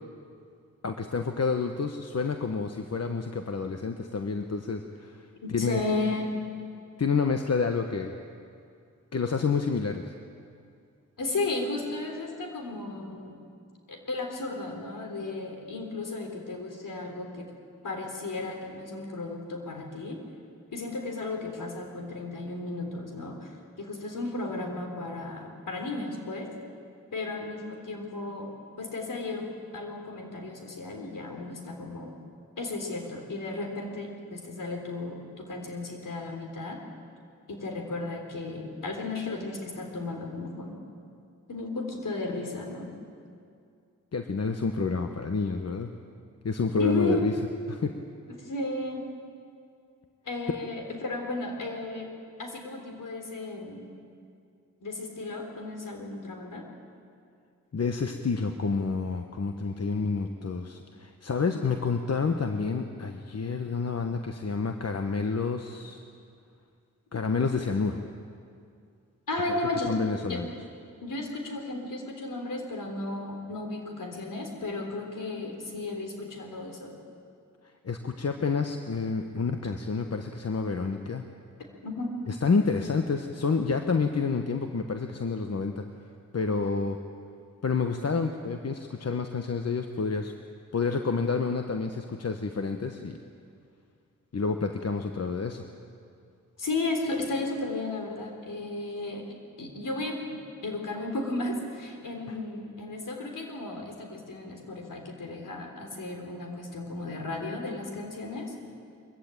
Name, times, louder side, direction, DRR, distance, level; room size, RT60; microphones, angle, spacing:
voice 1, 0.8-5.8 7.0-8.1 9.1-10.1 44.1-45.9 46.4-47.3 47.7-47.9 57.7-66.0 67.1-68.0 69.5-69.6 69.9-70.5 77.8-81.2 82.3-85.8 86.3-87.0 87.6-90.3 90.7-93.2 94.3-95.7, left 4 dB, 45° left, 6 dB, 1.2 m, -29 dB
voice 2, 5.4-6.3 11.2-13.4 13.9-17.5 17.8-20.2 20.7-26.5 27.1-29.5 29.7-32.1 32.6-36.8 37.5-40.7 41.5-42.9 46.8-47.3 48.4-49.1 50.3-52.1 52.4-53.9 54.8-56.6 69.3-69.9 70.3-70.5 71.0-77.0 81.8-82.2 96.6-108.5, left 2 dB, 65° left, 3 dB, 3.7 m, -34 dB
22.0 x 15.0 x 8.9 m, 2.4 s
supercardioid pair, 40°, 34 cm